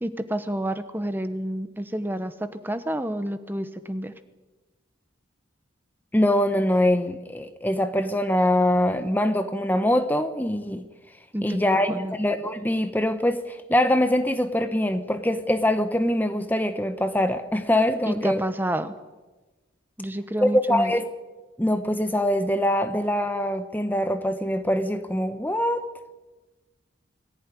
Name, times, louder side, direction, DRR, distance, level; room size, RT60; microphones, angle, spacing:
voice 1, 0.0-4.1 11.3-12.1 18.1-18.9 20.0-20.9, right 1 dB, 10° right, 10 dB, 1.0 m, -29 dB
voice 2, 6.1-10.8 11.4-18.4 20.4-21.0 21.6-25.8, left 1 dB, 10° left, 9 dB, 0.9 m, -23 dB
22.5 x 15.0 x 9.9 m, 1.2 s
head